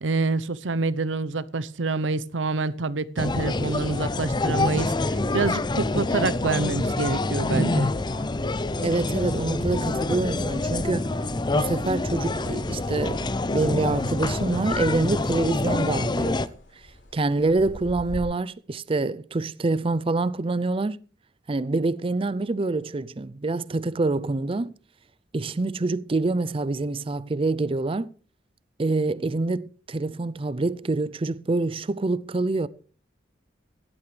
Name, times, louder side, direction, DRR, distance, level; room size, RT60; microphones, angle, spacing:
voice 1, 0.0-7.9, right 3 dB, 80° right, 0.8 m, -27 dB
sound 1, 3.2-16.5, left 2 dB, 25° left, 0.5 m, -26 dB
sound 2, 7.8-18.2, left 1 dB, 70° left, 4.9 m, -46 dB
voice 2, 8.8-11.1 11.5-16.4 17.1-21.0 21.5-24.7 25.3-28.1 28.8-32.7, right 2 dB, 30° right, 0.5 m, -26 dB
17.0 x 12.0 x 3.3 m
head